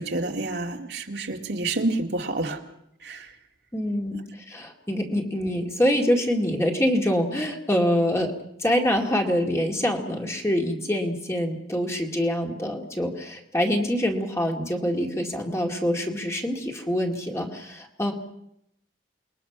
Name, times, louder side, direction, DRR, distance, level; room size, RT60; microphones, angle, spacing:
voice 1, 0.0-2.6 3.0-3.4 4.1-4.2, right 2 dB, 60° right, 2 dB, 2.1 m, -29 dB
voice 2, 3.7-8.3 8.6-18.1, equal, 15° left, 1 dB, 2.1 m, -25 dB
28.5 x 21.0 x 5.9 m, 0.79 s
head